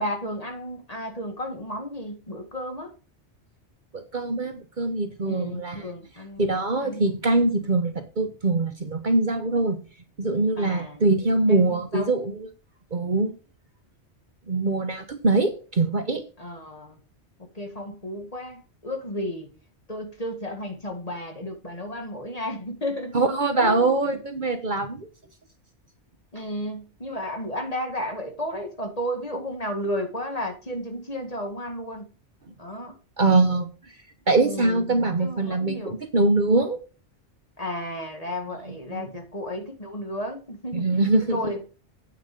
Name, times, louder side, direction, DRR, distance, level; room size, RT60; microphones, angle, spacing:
voice 1, 0.0-2.9 5.2-6.6 6.8-7.1 10.6-11.0 11.5-12.1 16.4-17.0 17.5-19.5 19.9-23.2 23.5-24.2 26.3-32.1 32.6-33.0 34.4-34.9 35.2-36.0 37.6-40.9 41.3-41.6, equal, 30° left, 4 dB, 2.0 m, -33 dB
voice 2, 3.9-5.8 6.4-9.8 10.2-12.5 12.9-13.3 14.5-16.3 23.1-25.1 33.2-33.7 34.3-36.8 38.9-39.1 40.7-41.4, right 2 dB, 45° right, 8 dB, 1.1 m, -23 dB
9.0 x 7.0 x 5.2 m, 0.34 s
omnidirectional pair, 1.2 m